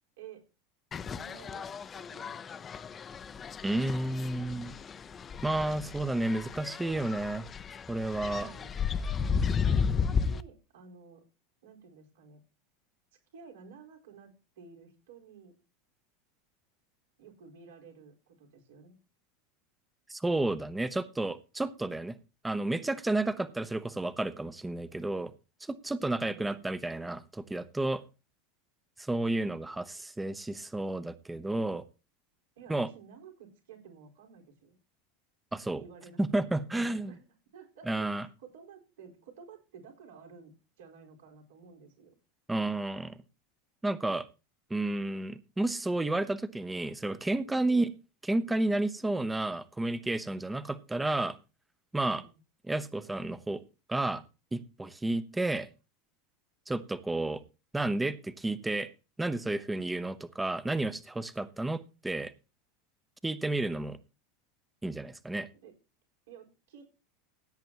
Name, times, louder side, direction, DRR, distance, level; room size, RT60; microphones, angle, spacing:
sound 1, 0.9-10.4, left 6 dB, 30° left, 0.7 m, -33 dB
voice 1, 1.0-2.7 8.3-9.1 9.6-11.2 11.6-12.4 13.3-15.5 17.2-19.0 32.6-34.8 35.8-36.2 36.7-37.2 37.5-42.1 47.7-47.8 52.1-52.4 65.5-65.8 66.3-66.9, right 6 dB, 75° right, 1 dB, 4.4 m, -53 dB
voice 2, 3.6-4.7 5.4-7.5 7.9-8.5 20.1-22.2 22.4-25.3 25.6-28.0 29.0-31.8 32.7-32.9 35.5-35.8 36.2-37.1 37.9-38.3 42.5-43.2 43.8-44.3 44.7-47.9 48.2-51.4 51.9-52.2 52.7-53.6 53.9-54.2 54.5-55.7 56.7-57.4 57.7-58.9 59.2-62.3 63.2-64.0 64.8-65.5, right 2 dB, 10° right, 14 dB, 0.9 m, -31 dB
16.5 x 9.0 x 2.9 m, 0.30 s
hypercardioid pair, 95°, 0 cm